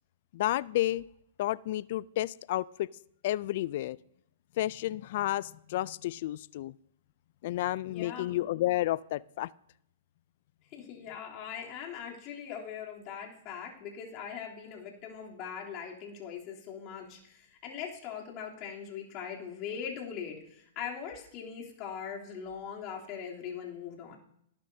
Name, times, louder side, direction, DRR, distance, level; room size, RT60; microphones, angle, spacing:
voice 1, 0.3-1.0 1.4-2.9 3.2-4.0 4.6-6.7 7.4-9.5, left 15 dB, 55° left, 21 dB, 0.4 m, -31 dB
voice 2, 7.9-8.4 10.7-24.2, left 7 dB, 40° left, -2 dB, 3.4 m, -41 dB
19.0 x 9.7 x 2.8 m, 0.74 s
hypercardioid pair, 125°, 0 cm